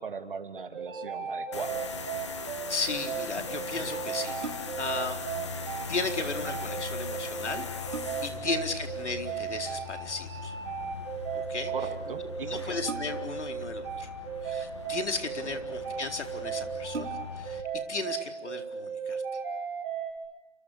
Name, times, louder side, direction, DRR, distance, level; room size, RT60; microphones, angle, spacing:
voice 1, 0.0-1.8 3.7-3.9 8.3-8.6 11.7-12.8 17.0-17.1, right 5 dB, 50° right, 6 dB, 3.0 m, -39 dB
sound 1, 0.7-20.1, right 7 dB, 25° right, 5.1 m, -35 dB
sound 2, 1.5-17.6, left 4 dB, 25° left, 1.5 m, -40 dB
voice 2, 2.7-5.2 5.9-7.9 8.2-10.5 11.5-11.7 12.4-14.1 14.4-17.6 17.9-19.2, left 3 dB, 80° left, 4 dB, 4.2 m, -35 dB
sound 3, 4.4-5.0 7.0-7.1 7.5-8.5 10.0-10.4 12.8-13.5 14.4-15.1 15.9-16.0 16.3-16.4 16.9-17.5 18.0-18.1, right 4 dB, 90° right, 3.2 m, -41 dB
29.0 x 26.5 x 6.7 m, 1.1 s
hypercardioid pair, 175°, 34 cm